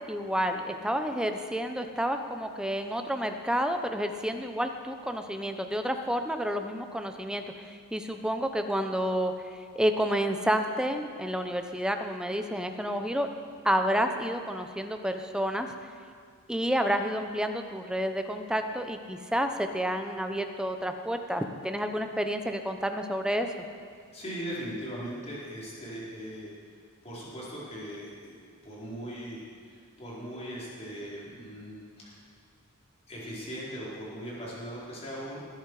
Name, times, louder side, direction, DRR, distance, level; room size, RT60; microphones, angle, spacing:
voice 1, 0.0-13.3 13.6-15.7 16.5-23.5, equal, 5° right, 6 dB, 0.8 m, -30 dB
voice 2, 24.1-26.5 27.0-28.4 28.6-32.2 33.1-35.4, equal, 30° left, -7 dB, 4.5 m, -39 dB
20.5 x 10.5 x 4.9 m, 2.1 s
head